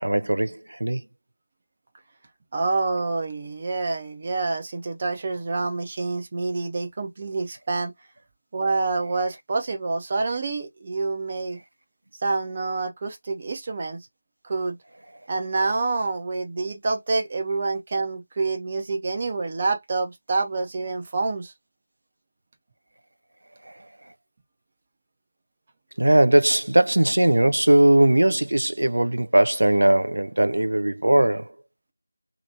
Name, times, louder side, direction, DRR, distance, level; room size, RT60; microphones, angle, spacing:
voice 1, 0.0-1.0 26.0-31.5, right 1 dB, 55° right, 0.4 m, -19 dB
voice 2, 2.5-7.9 8.5-11.6 12.2-14.1 14.4-14.8 15.3-21.5, right 3 dB, 20° right, 0.8 m, -27 dB
3.0 x 2.9 x 2.6 m
figure-of-eight pair, 170°, 0 cm